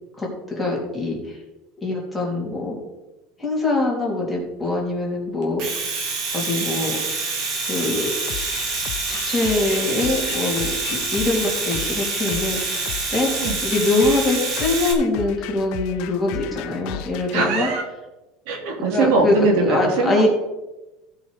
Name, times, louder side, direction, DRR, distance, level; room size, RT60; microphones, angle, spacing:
voice 1, 0.2-1.4 1.8-2.8 3.4-5.6 6.3-7.0 7.6-8.1 9.1-17.7 18.9-20.3, left 2 dB, 5° left, -4 dB, 3.2 m, -23 dB
Domestic sounds home sounds, 5.4-14.9, right 4 dB, 45° right, 2.3 m, -26 dB
sound 1, 8.3-17.4, left 10 dB, 60° left, 0.7 m, -35 dB
voice 2, 17.3-17.8 18.5-20.3, right 3 dB, 70° right, 2 dB, 2.6 m, -21 dB
15.5 x 5.7 x 5.0 m, 1.0 s
supercardioid pair, 145°, 0 cm